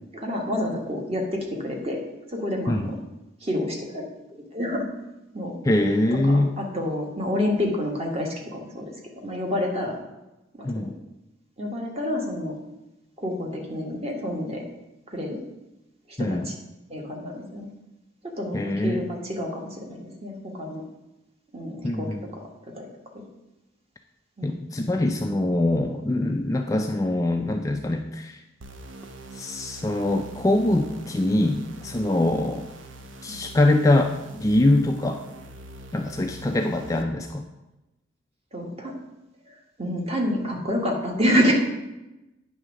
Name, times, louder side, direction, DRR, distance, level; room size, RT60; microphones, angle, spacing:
voice 1, 0.1-2.0 2.3-3.0 3.4-4.8 5.3-5.6 6.2-10.0 10.5-10.9 11.6-12.6 13.2-14.6 15.1-15.4 16.2-16.5 16.9-17.7 18.2-20.8 21.5-22.9 23.1-23.2 24.4-24.5 33.3-33.4 38.5-39.0 39.5-41.5, left 1 dB, 30° right, 0 dB, 1.3 m, -28 dB
voice 2, 5.7-6.5 10.6-10.9 16.2-16.5 18.5-19.1 21.8-22.2 24.4-28.4 29.3-32.7 33.2-35.2 35.9-37.4, left 1 dB, 15° left, 3 dB, 0.3 m, -23 dB
sound 1, 28.6-37.1, right 2 dB, 70° right, 0.7 m, -43 dB
9.0 x 3.5 x 6.2 m, 0.98 s
head